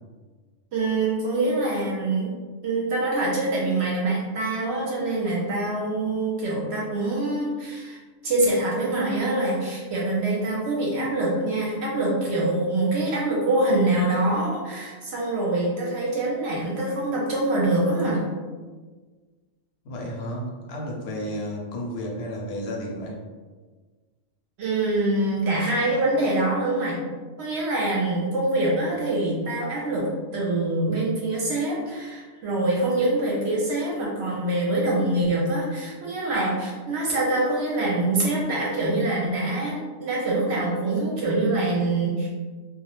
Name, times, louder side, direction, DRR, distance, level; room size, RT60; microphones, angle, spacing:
voice 1, 0.7-2.3 2.6-8.0 8.2-18.2 24.6-27.0 27.4-42.3, right 2 dB, 65° right, -4 dB, 0.8 m, -25 dB
voice 2, 19.8-23.2, equal, 65° left, -1 dB, 0.8 m, -32 dB
2.2 x 2.0 x 2.9 m, 1.4 s
omnidirectional pair, 1.3 m